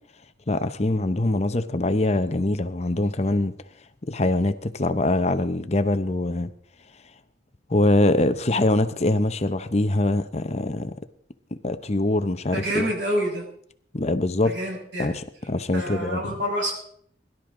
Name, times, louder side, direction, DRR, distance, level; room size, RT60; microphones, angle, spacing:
voice 1, 0.5-3.5 4.1-6.5 7.7-10.9 11.6-12.9 13.9-14.5 15.0-16.2, left 2 dB, 35° left, 11 dB, 0.8 m, -23 dB
voice 2, 12.5-13.5 14.4-15.2 15.7-16.8, equal, 80° right, -1 dB, 6.6 m, -27 dB
22.0 x 12.0 x 3.8 m, 0.63 s
head